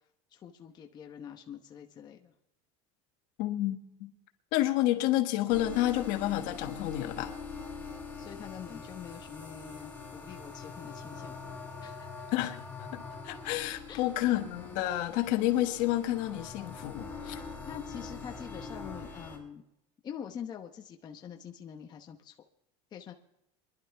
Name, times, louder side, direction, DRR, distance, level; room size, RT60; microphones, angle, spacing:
voice 1, 0.3-2.3 8.2-11.4 11.8-12.3 13.9-14.0 17.7-19.6 20.0-22.3 22.9-23.1, left 8 dB, 30° left, 0.9 m, -45 dB
voice 2, 3.4-4.1 4.5-7.3 12.3-12.6 12.9-17.4, left 14 dB, 65° left, 1.4 m, -30 dB
sound 1, 5.5-19.4, left 4 dB, 10° left, 4.4 m, -44 dB
23.0 x 11.5 x 3.4 m
cardioid pair, 145°, 14 cm